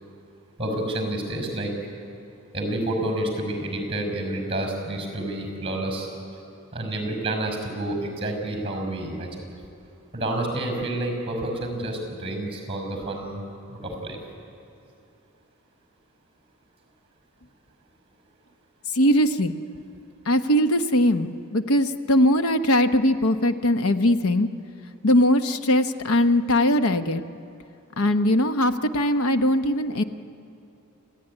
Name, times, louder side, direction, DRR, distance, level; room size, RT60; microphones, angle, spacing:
voice 1, 0.6-1.7 2.5-6.1 6.7-9.5 10.1-13.4 13.7-14.2, right 1 dB, 25° right, 4 dB, 5.5 m, -29 dB
voice 2, 18.9-19.5 20.3-24.5 25.0-27.2 28.0-30.0, left 1 dB, 70° left, 9 dB, 1.0 m, -20 dB
27.0 x 15.0 x 9.9 m, 2.7 s
head